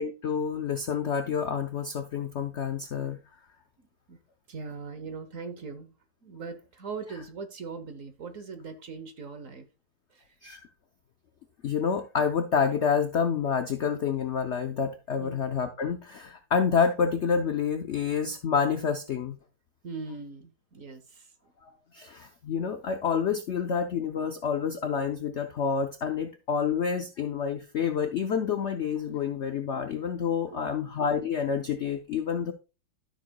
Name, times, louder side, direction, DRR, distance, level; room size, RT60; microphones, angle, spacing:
voice 1, 0.0-3.2 10.4-10.7 11.6-19.4 21.9-32.5, left 6 dB, 90° left, 6 dB, 0.6 m, -28 dB
voice 2, 3.8-4.2 4.5-5.9 6.2-9.7 10.1-10.2 15.2-15.4 19.8-21.5 30.5-30.9, right 4 dB, 55° right, 9 dB, 1.1 m, -40 dB
12.5 x 6.6 x 2.2 m, 0.31 s
omnidirectional pair, 2.0 m